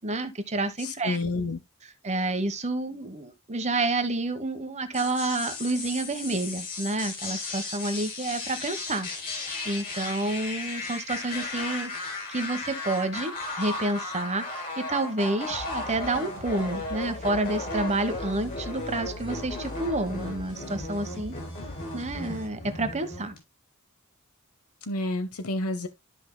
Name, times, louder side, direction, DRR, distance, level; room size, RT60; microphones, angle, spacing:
voice 1, 0.0-1.2 2.0-9.1 9.3-21.3 21.9-23.3, right 2 dB, 30° right, 1.1 m, -29 dB
voice 2, 0.8-1.6 24.8-25.9, left 2 dB, 90° left, 0.9 m, -29 dB
sound 1, 4.9-23.4, left 2 dB, 40° left, 3.9 m, -36 dB
sound 2, 15.5-22.5, left 1 dB, 65° left, 4.8 m, -41 dB
13.0 x 5.4 x 2.2 m
head